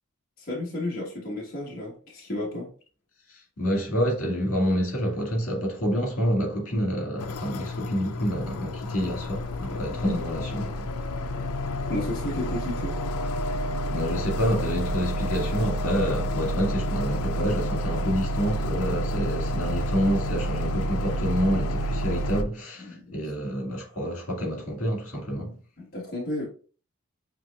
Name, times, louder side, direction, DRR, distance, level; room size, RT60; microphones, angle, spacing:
voice 1, 0.4-2.7 9.7-10.2 11.9-13.0 22.8-23.3 25.8-26.5, left 1 dB, 45° left, 1.3 m, -32 dB
voice 2, 3.3-10.9 13.9-25.5, equal, 75° left, 1.9 m, -28 dB
sound 1, 7.2-22.4, equal, 90° left, 0.5 m, -29 dB
7.3 x 3.0 x 2.3 m
head